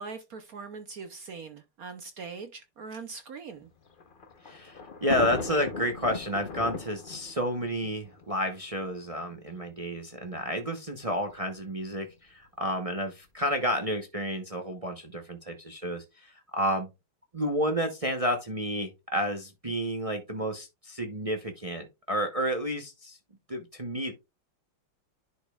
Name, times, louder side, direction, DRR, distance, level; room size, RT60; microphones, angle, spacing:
voice 1, 0.0-3.7, right 4 dB, 60° right, 0.9 m, -41 dB
Thunder, 3.6-9.0 9.8-9.9 10.1-10.2 11.3-11.6, left 4 dB, 50° left, 0.6 m, -38 dB
voice 2, 4.4-16.9 17.3-23.2 23.5-24.1, equal, 45° right, 0.4 m, -31 dB
10.5 x 5.2 x 2.4 m
omnidirectional pair, 2.4 m